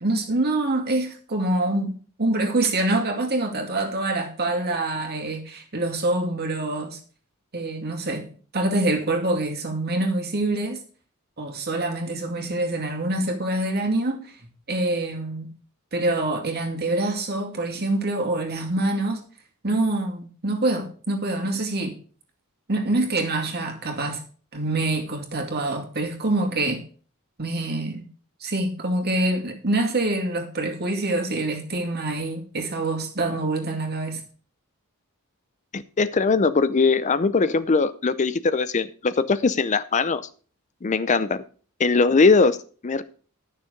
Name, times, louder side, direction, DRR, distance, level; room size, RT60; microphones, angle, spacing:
voice 1, 0.0-7.0 7.5-8.3 8.5-10.8 11.4-14.3 14.7-15.5 15.9-19.2 19.6-22.0 22.7-24.2 24.5-26.8 27.4-28.0 28.4-34.2, right 2 dB, 45° right, 2.3 m, -25 dB
voice 2, 35.7-40.2 40.8-41.4 41.8-42.6 42.8-43.0, left 4 dB, 35° left, 0.5 m, -20 dB
11.5 x 6.6 x 5.1 m
head